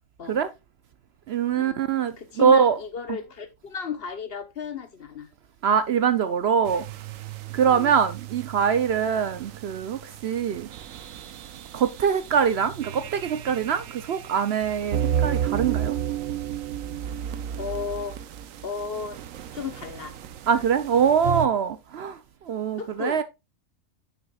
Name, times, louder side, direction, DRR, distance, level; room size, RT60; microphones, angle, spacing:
voice 1, 1.3-2.8 5.6-6.8 7.5-10.7 11.7-15.9 20.5-22.2 22.5-23.2, right 7 dB, 60° right, 0.7 m, -23 dB
voice 2, 2.2-5.3 7.6-8.0 17.6-18.2 18.6-19.2 19.5-20.2 22.8-23.2, left 6 dB, 50° left, 1.0 m, -34 dB
sound 1, 6.7-21.5, right 9 dB, 80° right, 1.1 m, -33 dB
9.5 x 6.1 x 2.3 m
omnidirectional pair, 1.4 m